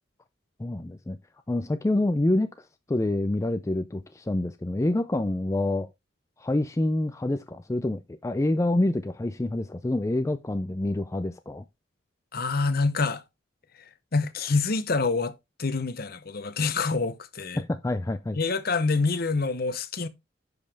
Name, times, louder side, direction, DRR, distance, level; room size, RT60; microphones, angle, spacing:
voice 1, 0.6-1.2 1.5-2.5 2.9-5.9 6.4-11.6 17.6-18.4, left 1 dB, 15° left, 0.4 m, -27 dB
voice 2, 12.3-13.2 14.1-17.6 18.3-20.1, left 4 dB, 50° left, 0.8 m, -26 dB
10.5 x 5.4 x 3.4 m
head